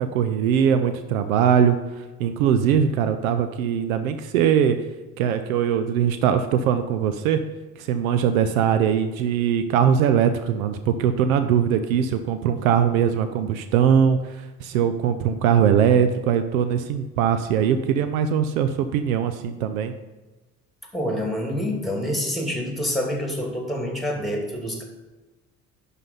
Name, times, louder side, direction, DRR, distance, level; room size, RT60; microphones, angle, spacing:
voice 1, 0.0-4.8 5.2-7.4 7.8-19.9, right 8 dB, 75° right, 10 dB, 0.6 m, -21 dB
voice 2, 20.9-24.8, equal, ahead, 1 dB, 2.5 m, -27 dB
11.0 x 4.1 x 5.3 m, 1.2 s
figure-of-eight pair, 55°, 42 cm